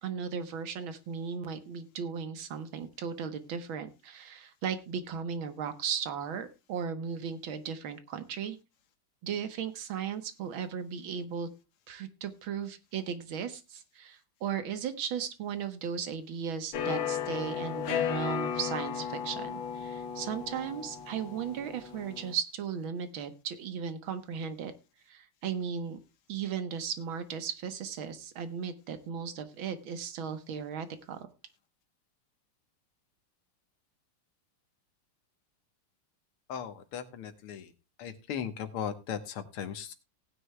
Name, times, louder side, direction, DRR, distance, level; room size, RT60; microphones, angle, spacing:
voice 1, 0.0-8.6 9.2-11.5 11.9-24.7 25.1-26.0 26.3-31.3, right 7 dB, 70° right, 10 dB, 1.9 m, -36 dB
sound 1, 16.7-22.3, left 8 dB, 65° left, 1.6 m, -35 dB
Keyboard (musical), 17.9-19.8, left 8 dB, 50° left, 0.8 m, -47 dB
voice 2, 36.5-37.7 38.0-39.9, left 8 dB, 85° left, 9 dB, 2.0 m, -37 dB
18.0 x 9.6 x 2.2 m, 0.27 s
omnidirectional pair, 2.4 m